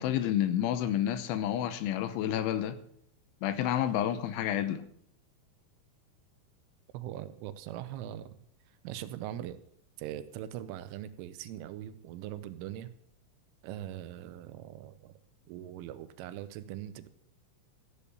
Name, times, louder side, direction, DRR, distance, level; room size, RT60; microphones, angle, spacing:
voice 1, 0.0-2.8 3.4-4.8, left 11 dB, 80° left, 3.1 m, -29 dB
voice 2, 6.9-8.4 8.8-9.6 10.0-12.9 13.6-15.1 15.5-17.1, right 12 dB, 85° right, 3.3 m, -41 dB
15.0 x 8.6 x 6.9 m
omnidirectional pair, 5.7 m